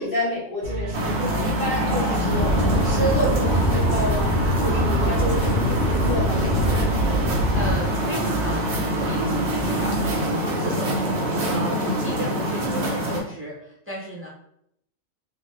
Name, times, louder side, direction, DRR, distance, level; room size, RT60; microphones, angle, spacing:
voice 1, 0.0-2.6 2.8-6.9 11.7-12.3, equal, 15° left, -11 dB, 0.7 m, -29 dB
sound 1, 0.6-10.3, right 3 dB, 65° right, 0.8 m, -31 dB
sound 2, 0.9-13.2, equal, 90° right, 1.2 m, -25 dB
sound 3, 2.3-7.7, equal, 70° left, 0.8 m, -23 dB
voice 2, 7.2-8.7 9.0-11.1 11.5-14.3, right 1 dB, 20° right, -6 dB, 0.4 m, -34 dB
2.7 x 2.1 x 3.1 m, 0.74 s
omnidirectional pair, 1.4 m